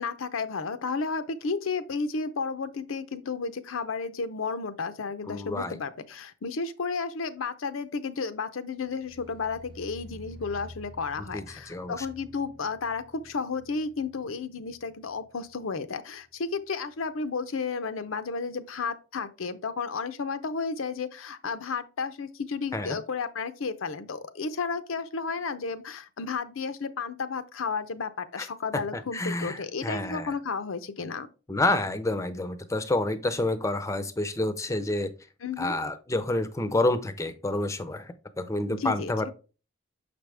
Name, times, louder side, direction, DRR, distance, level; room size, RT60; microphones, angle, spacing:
voice 1, 0.0-31.3 35.4-35.8 38.7-39.3, left 4 dB, 80° left, 0.6 m, -32 dB
voice 2, 5.3-5.8 11.3-12.1 22.7-23.0 28.4-28.5 28.7-28.8 29.1-30.3 31.5-35.1 35.6-39.3, left 2 dB, 15° left, 0.5 m, -29 dB
sound 1, 8.8-15.9 16.2-16.6 17.0-17.1, left 1 dB, 40° right, 0.8 m, -50 dB
6.8 x 5.1 x 3.3 m
head